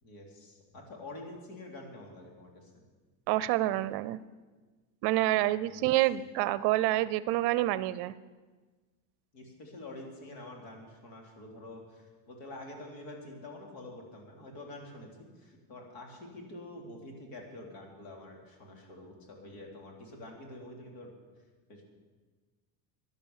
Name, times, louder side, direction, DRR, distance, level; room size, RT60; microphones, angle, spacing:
voice 1, 0.0-2.7 5.6-5.9 6.1-6.2 9.3-21.1 21.7-21.8, left 1 dB, 75° left, 1 dB, 3.9 m, -47 dB
voice 2, 3.3-4.2 5.0-8.1, right 15 dB, 55° right, 17 dB, 0.6 m, -27 dB
12.0 x 11.0 x 7.3 m, 1.3 s
supercardioid pair, 130°, 49 cm